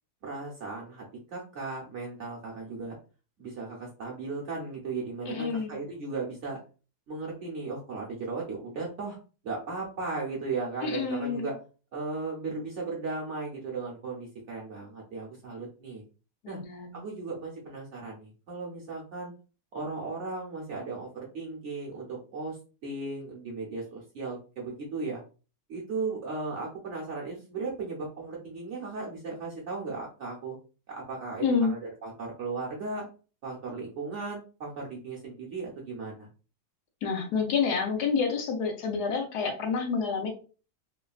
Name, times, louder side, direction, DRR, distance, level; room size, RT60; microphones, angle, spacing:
voice 1, 0.2-3.0 3.4-6.6 7.1-9.2 9.4-11.6 11.9-16.0 16.5-16.6 16.9-19.3 19.7-22.6 22.8-25.2 25.7-30.6 30.9-33.1 33.4-36.3, right 3 dB, 60° right, -3 dB, 0.8 m, -36 dB
voice 2, 5.3-5.8 10.8-11.5 16.4-17.0 31.4-31.7 37.0-40.3, left 5 dB, 75° left, 4 dB, 1.2 m, -28 dB
3.1 x 2.2 x 2.3 m, 0.35 s
omnidirectional pair, 1.8 m